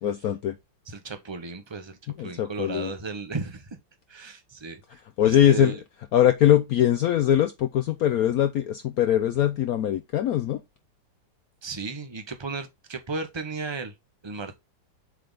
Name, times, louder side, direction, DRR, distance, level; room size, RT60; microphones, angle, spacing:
voice 1, 0.0-0.6 2.1-2.9 5.2-5.7 6.1-10.6, left 11 dB, 85° left, 0.8 m, -22 dB
voice 2, 0.9-3.8 4.1-5.8 11.6-13.9 14.2-14.5, right 4 dB, 45° right, 0.3 m, -35 dB
7.7 x 3.4 x 3.9 m
omnidirectional pair, 2.1 m